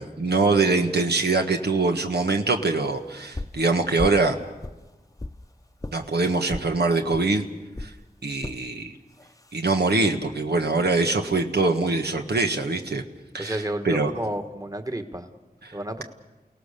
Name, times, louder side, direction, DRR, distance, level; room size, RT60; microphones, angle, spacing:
voice 1, 0.0-4.4 5.9-7.4 7.8-7.9 8.2-8.9 9.5-13.0 13.3-13.6 13.8-14.1 15.7-15.8, right 3 dB, 80° right, 4 dB, 1.5 m, -23 dB
sound 1, 3.3-3.6 4.0-4.3 4.6-5.4 5.8-6.0 6.5-6.7 7.1-7.3 7.7-7.9 8.4-8.6 9.2-9.5, left 2 dB, 20° left, 0.8 m, -34 dB
voice 2, 13.3-15.3 15.7-16.0, right 1 dB, 20° right, 6 dB, 1.7 m, -31 dB
29.5 x 17.5 x 6.8 m, 1.1 s
wide cardioid pair, 45°, 17 cm